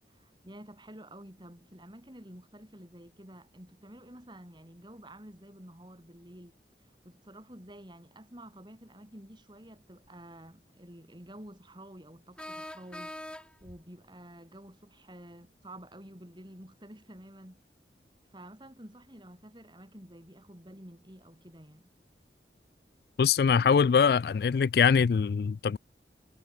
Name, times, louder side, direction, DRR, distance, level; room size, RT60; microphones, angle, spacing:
voice 1, 0.1-6.5 7.0-17.6 18.3-21.8, right 1 dB, 25° right, 5.9 m, -50 dB
sound 1, 10.1-10.2 12.4-13.8, left 1 dB, 5° left, 1.2 m, -43 dB
voice 2, 23.2-25.8, left 6 dB, 55° left, 0.3 m, -23 dB
head